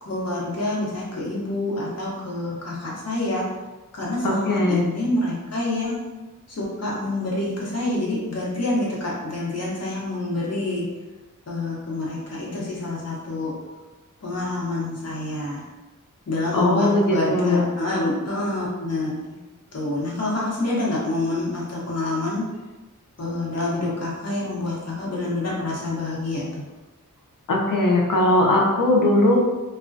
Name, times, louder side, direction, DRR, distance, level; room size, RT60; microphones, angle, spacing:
voice 1, 0.0-3.5 3.9-6.0 6.5-10.9 11.5-13.5 14.2-15.6 16.3-19.4 19.7-22.5 23.2-26.6, left 2 dB, 50° left, -5 dB, 0.8 m, -27 dB
voice 2, 4.2-4.8 16.5-17.7 27.5-29.4, left 1 dB, 80° left, -1 dB, 0.6 m, -19 dB
2.3 x 2.1 x 2.5 m, 1.2 s
wide cardioid pair, 80°, 32 cm